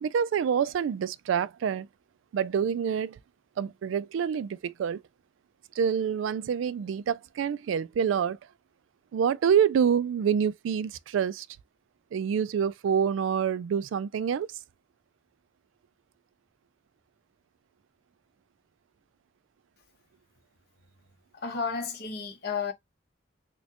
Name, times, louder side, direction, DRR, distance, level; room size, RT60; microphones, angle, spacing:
voice 1, 0.0-1.9 2.3-3.2 3.6-5.0 5.8-8.4 9.1-11.5 12.1-14.5, right 7 dB, 80° right, 0.3 m, -27 dB
voice 2, 21.3-22.7, left 5 dB, 55° left, 0.9 m, -32 dB
4.2 x 2.2 x 2.8 m
head